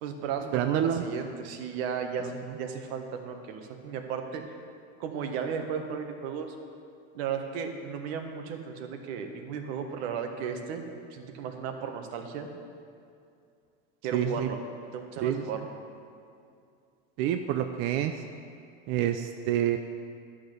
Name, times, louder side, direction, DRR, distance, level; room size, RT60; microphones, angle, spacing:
voice 1, 0.0-4.6 5.0-6.5 7.1-10.8 11.1-12.5 14.0-14.6 14.9-15.7, right 7 dB, 65° right, 5 dB, 1.4 m, -35 dB
voice 2, 0.5-1.0 14.1-14.5 15.2-15.4 17.2-18.1 18.9-19.8, right 10 dB, 40° right, 7 dB, 0.4 m, -27 dB
11.5 x 6.4 x 6.6 m, 2.4 s
supercardioid pair, 145°, 34 cm